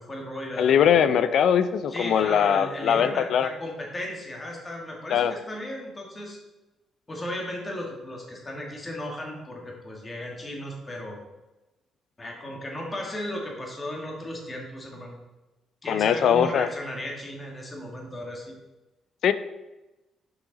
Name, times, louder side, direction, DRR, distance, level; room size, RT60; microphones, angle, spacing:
voice 1, 0.0-1.1 1.9-6.4 7.1-11.2 12.2-15.2 15.8-18.6, left 1 dB, 25° left, -1 dB, 2.0 m, -35 dB
voice 2, 0.6-3.5 5.1-5.3 15.9-16.7 19.2-19.3, left 8 dB, 70° left, 12 dB, 0.5 m, -21 dB
6.3 x 5.8 x 4.0 m, 1.0 s
cardioid pair, 90°, 0 cm